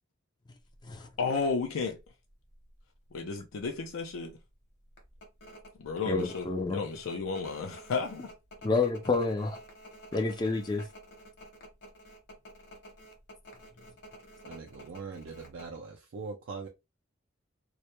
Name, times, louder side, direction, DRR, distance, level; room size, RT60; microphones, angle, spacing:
sound 1, 0.7-0.9 1.5-1.6 1.9-2.8 3.2-3.3 3.6-3.9 4.3-4.4 5.0-15.8, equal, 55° left, 0.9 m, -50 dB
voice 1, 1.2-2.0 3.1-4.4 5.8-8.3, left 4 dB, 85° left, 0.4 m, -33 dB
voice 2, 6.1-6.8 8.6-9.6 10.1-10.9, left 3 dB, 20° left, 0.4 m, -29 dB
voice 3, 14.4-16.7, right 4 dB, 65° right, 0.4 m, -41 dB
2.2 x 2.1 x 2.8 m
head